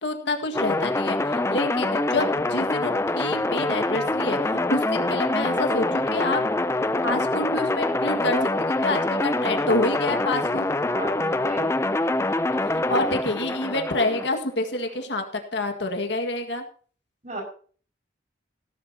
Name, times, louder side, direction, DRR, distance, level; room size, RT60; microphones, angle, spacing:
voice 1, 0.0-6.4 7.0-10.7 12.7-15.2 15.5-16.6, left 2 dB, 70° left, 4 dB, 1.9 m, -27 dB
sound 1, 0.5-14.3, left 2 dB, 15° left, 0.5 m, -25 dB
voice 2, 10.9-11.8 17.2-17.4, right 2 dB, 40° right, 2 dB, 5.7 m, -34 dB
17.5 x 12.0 x 2.9 m, 0.42 s
head